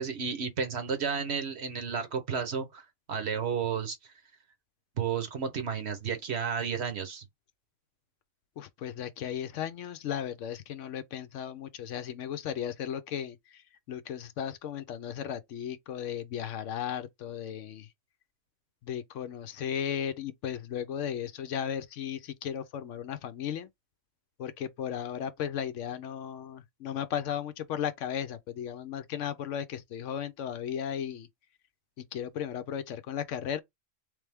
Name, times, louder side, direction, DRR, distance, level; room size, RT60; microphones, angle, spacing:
voice 1, 0.0-4.0 5.0-7.2, right 6 dB, 55° right, 1.0 m, -32 dB
voice 2, 8.6-17.9 18.8-23.7 24.4-31.3 32.0-33.6, left 9 dB, 70° left, 0.9 m, -35 dB
3.4 x 3.2 x 3.4 m
omnidirectional pair, 1.4 m